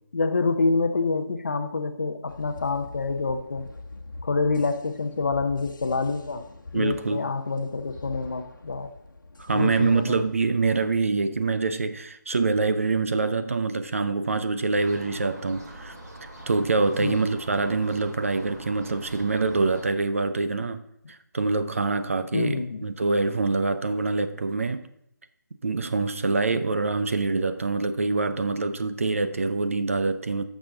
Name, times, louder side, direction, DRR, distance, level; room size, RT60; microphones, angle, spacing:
voice 1, 0.1-3.7 4.2-6.4 6.7-8.9 9.5-10.2 17.0-17.2 22.3-22.8 26.5-26.6, left 3 dB, 40° left, 0.7 m, -27 dB
sound 1, 2.3-10.4, left 2 dB, 80° left, 1.1 m, -44 dB
voice 2, 6.7-7.3 9.4-16.0 16.5-20.8 21.1-24.8 25.6-30.4, right 3 dB, 45° right, 0.6 m, -25 dB
sound 2, 14.7-19.8, right 1 dB, 60° right, 3.2 m, -44 dB
12.5 x 6.2 x 3.8 m
figure-of-eight pair, 170°, 10 cm